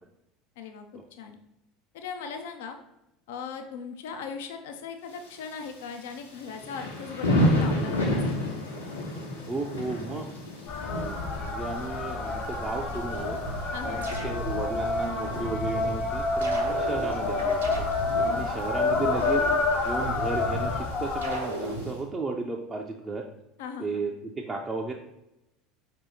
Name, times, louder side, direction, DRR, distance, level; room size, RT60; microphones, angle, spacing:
voice 1, 0.6-1.4 1.9-2.8 3.3-8.6 13.7-14.0 18.2-18.5 23.6-24.0, left 6 dB, 60° left, 5 dB, 0.5 m, -39 dB
Thunder / Rain, 5.1-21.9, equal, 80° left, 1.1 m, -33 dB
voice 2, 9.5-10.3 10.9-11.2 11.4-13.4 13.8-17.9 18.3-19.5 19.8-23.2 23.8-24.9, right 3 dB, 20° right, 0 dB, 0.5 m, -34 dB
sound 1, 10.7-21.4, left 3 dB, 40° left, 0.9 m, -28 dB
sound 2, 13.4-14.7 15.2-15.9 16.4-18.3 18.8-20.7 21.2-21.9, right 2 dB, 75° right, 0.9 m, -35 dB
5.2 x 2.9 x 3.3 m, 0.88 s
figure-of-eight pair, 70°, 0 cm